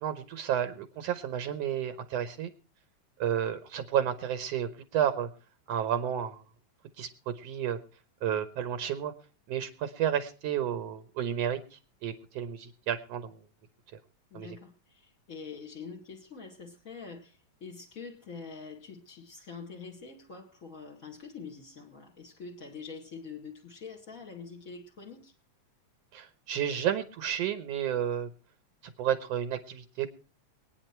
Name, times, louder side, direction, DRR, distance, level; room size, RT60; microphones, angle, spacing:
voice 1, 0.0-2.5 3.2-5.3 5.7-6.4 7.0-7.8 8.2-9.1 9.5-13.4 14.3-14.6 26.1-28.3 28.8-30.1, right 9 dB, 65° right, 2.0 m, -31 dB
voice 2, 14.3-25.3, left 5 dB, 35° left, 1.8 m, -45 dB
23.5 x 9.5 x 4.4 m
omnidirectional pair, 3.3 m